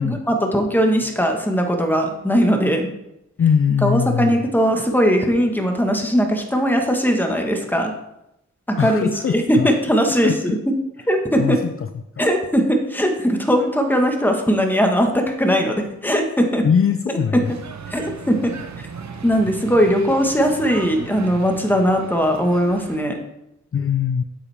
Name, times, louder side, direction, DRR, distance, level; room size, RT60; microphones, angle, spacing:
voice 1, 0.0-2.9 3.8-8.0 8.7-10.8 11.1-11.6 12.2-16.6 17.3-17.4 17.9-18.5 19.2-23.2, equal, 5° left, 3 dB, 1.3 m, -19 dB
voice 2, 3.4-4.3 8.8-9.7 10.1-10.6 11.4-11.9 12.2-12.3 16.6-17.5 23.7-24.2, left 7 dB, 50° left, 7 dB, 0.5 m, -21 dB
sound 1, 17.4-23.0, right 5 dB, 70° right, 0.8 m, -36 dB
8.7 x 7.3 x 3.4 m, 0.86 s
cardioid pair, 65°, 29 cm